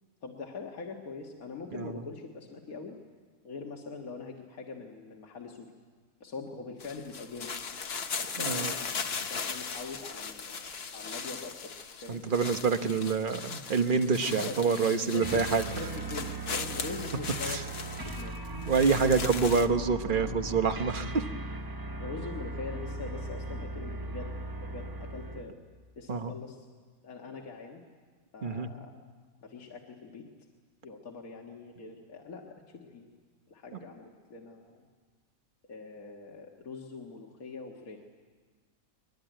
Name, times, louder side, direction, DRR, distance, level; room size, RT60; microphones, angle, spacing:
voice 1, 0.2-3.0 3.4-5.7 6.2-7.5 8.2-11.7 12.0-12.2 14.4-15.5 15.8-18.3 19.1-19.2 22.0-24.3 24.6-25.6 26.0-26.7 27.0-27.8 28.3-28.9 29.4-30.3 30.8-33.1 33.5-34.9 35.7-38.0, left 4 dB, 80° left, 0 dB, 2.1 m, -43 dB
sound 1, 6.8-19.7, left 5 dB, 50° left, 1.2 m, -38 dB
voice 2, 8.4-8.7 12.1-15.6 17.5-17.6 18.5-21.3 26.1-26.3 28.4-28.7, right 5 dB, 40° right, 9 dB, 1.1 m, -27 dB
sound 2, 15.2-25.5, right 2 dB, 20° right, 0.9 m, -38 dB
22.5 x 21.0 x 9.1 m, 1.5 s
omnidirectional pair, 1.5 m